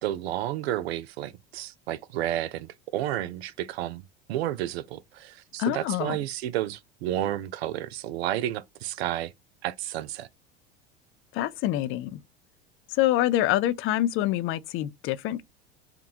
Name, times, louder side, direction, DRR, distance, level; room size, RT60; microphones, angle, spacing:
voice 1, 0.0-9.3 9.6-10.3, right 13 dB, 75° right, 0.5 m, -31 dB
voice 2, 5.6-6.2 11.3-12.2 12.9-15.4, left 14 dB, 40° left, 0.4 m, -26 dB
3.6 x 2.3 x 2.8 m
hypercardioid pair, 80°, 32 cm